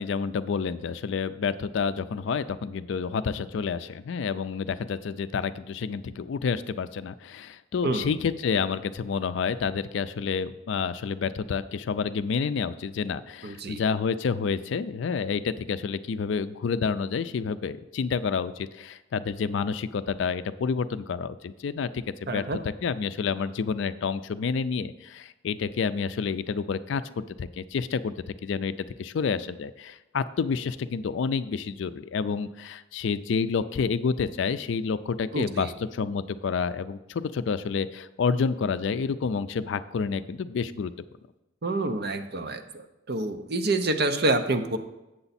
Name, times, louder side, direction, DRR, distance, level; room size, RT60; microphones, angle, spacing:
voice 1, 0.0-28.1 28.4-28.7 29.0-40.9, left 5 dB, 65° left, 13 dB, 0.4 m, -29 dB
voice 2, 13.4-13.8 22.3-22.6 35.3-35.7 41.6-44.8, right 2 dB, 50° right, 7 dB, 0.6 m, -27 dB
7.8 x 6.9 x 4.1 m, 0.98 s
head